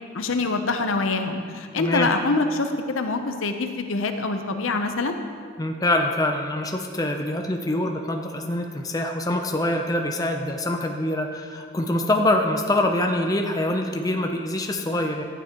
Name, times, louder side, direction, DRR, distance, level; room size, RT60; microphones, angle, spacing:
voice 1, 0.1-5.1, left 3 dB, 80° left, 6 dB, 0.7 m, -25 dB
voice 2, 1.8-2.1 5.6-15.2, left 1 dB, 20° left, 3 dB, 0.5 m, -24 dB
12.5 x 9.1 x 2.9 m, 2.1 s
head